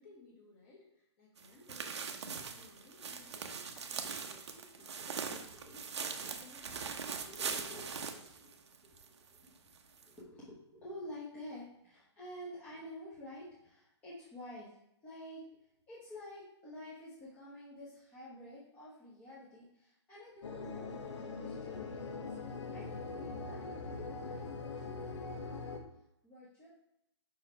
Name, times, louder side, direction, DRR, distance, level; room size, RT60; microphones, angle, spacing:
voice 1, 0.0-5.3 5.7-7.6, left 3 dB, 25° left, -2 dB, 1.8 m, -59 dB
sound 1, 1.4-9.1 9.4-9.5 10.0-10.1, right 6 dB, 70° right, 0.8 m, -41 dB
voice 2, 5.0-6.3 7.2-8.7 9.0-9.7 10.0-14.8 15.0-22.3 22.7-25.7 26.2-26.7, left 1 dB, 10° left, -10 dB, 1.1 m, -50 dB
sound 2, 20.4-25.8, left 4 dB, 85° left, 1.2 m, -42 dB
5.6 x 4.7 x 4.5 m, 0.79 s
hypercardioid pair, 165°, 15 cm